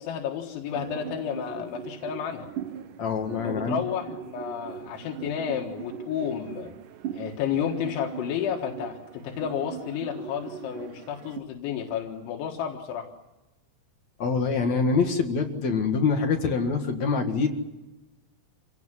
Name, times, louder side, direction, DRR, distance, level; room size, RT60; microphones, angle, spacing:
voice 1, 0.0-2.5 3.4-6.7 7.1-13.1, left 9 dB, 85° left, 1 dB, 4.0 m, -31 dB
sound 1, 0.7-11.4, right 10 dB, 85° right, 1.8 m, -40 dB
voice 2, 3.0-3.8 14.2-17.5, left 5 dB, 50° left, 4 dB, 2.4 m, -25 dB
27.5 x 17.5 x 9.8 m, 1.0 s
omnidirectional pair, 5.2 m